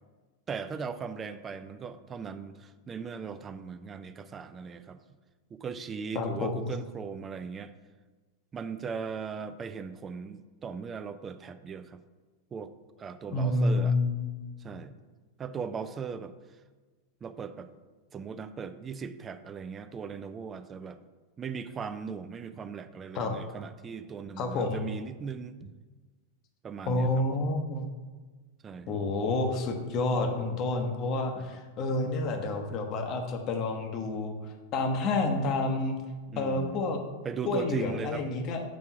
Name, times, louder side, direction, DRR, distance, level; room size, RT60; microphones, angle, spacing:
voice 1, 0.5-5.0 5.5-7.7 8.5-12.0 12.5-12.7 13.0-14.0 14.6-15.0 15.4-16.3 17.2-17.7 18.1-21.0 21.4-25.7 26.6-27.2 28.6-28.9 31.4-31.5 36.3-36.8 37.2-38.3, right 6 dB, 20° right, 12 dB, 0.4 m, -38 dB
voice 2, 6.1-6.7 13.3-14.3 23.1-23.3 24.4-24.8 26.9-27.9 28.9-34.4 34.7-36.0 36.4-37.0 37.5-38.6, left 2 dB, 35° left, 4 dB, 0.9 m, -29 dB
6.2 x 3.5 x 5.7 m, 1.3 s
figure-of-eight pair, 90°, 0 cm